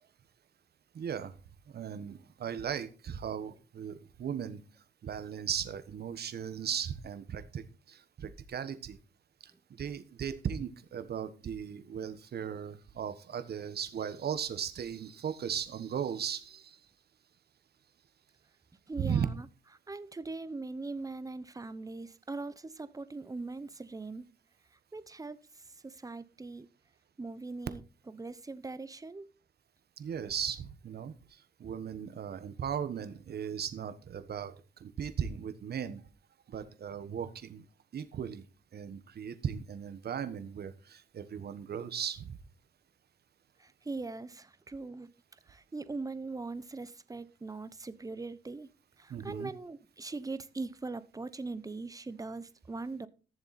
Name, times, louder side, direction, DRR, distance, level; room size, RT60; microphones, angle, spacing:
voice 1, 0.9-1.3 1.7-4.6 5.0-9.0 9.8-16.8 19.0-19.3 30.0-36.0 36.5-37.7 37.9-38.4 38.7-42.4 49.1-49.5, right 8 dB, 55° right, 1.3 m, -37 dB
voice 2, 18.9-19.5 19.9-24.2 24.9-25.4 25.8-26.7 27.2-27.8 28.1-29.3 43.6-45.1 45.5-48.7 49.0-53.1, right 3 dB, 15° right, 0.9 m, -41 dB
14.0 x 7.0 x 4.2 m
cardioid pair, 90°, 20 cm